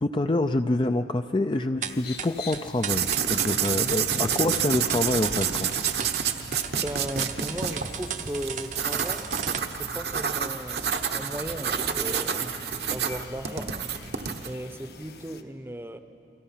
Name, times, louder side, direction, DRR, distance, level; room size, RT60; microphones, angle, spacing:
voice 1, 0.0-5.7, left 2 dB, 25° left, 8 dB, 0.4 m, -26 dB
sound 1, 1.8-15.4, left 6 dB, 60° left, 1.1 m, -47 dB
sound 2, 1.8-9.6, right 8 dB, 40° right, 0.8 m, -35 dB
sound 3, 2.9-14.5, right 7 dB, 60° right, 1.1 m, -29 dB
voice 2, 6.8-9.3 9.7-13.8 14.4-16.0, equal, 15° right, 9 dB, 0.8 m, -36 dB
30.0 x 23.5 x 5.8 m, 2.8 s
head